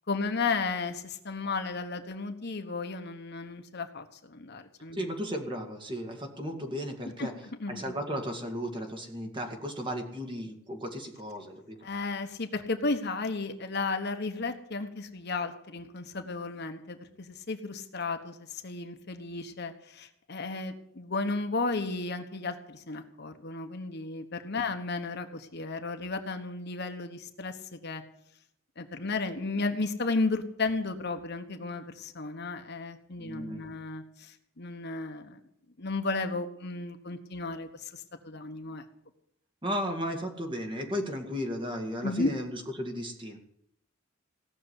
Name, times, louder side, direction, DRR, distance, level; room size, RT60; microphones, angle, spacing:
voice 1, 0.1-5.0 7.2-7.3 7.6-7.9 11.8-28.0 28.8-35.4 35.8-38.8 42.0-42.3, left 3 dB, 55° left, 7 dB, 1.3 m, -34 dB
voice 2, 4.9-7.3 7.7-11.8 33.2-33.7 39.6-43.4, equal, 25° right, 3 dB, 2.3 m, -35 dB
17.0 x 6.8 x 9.8 m, 0.76 s
head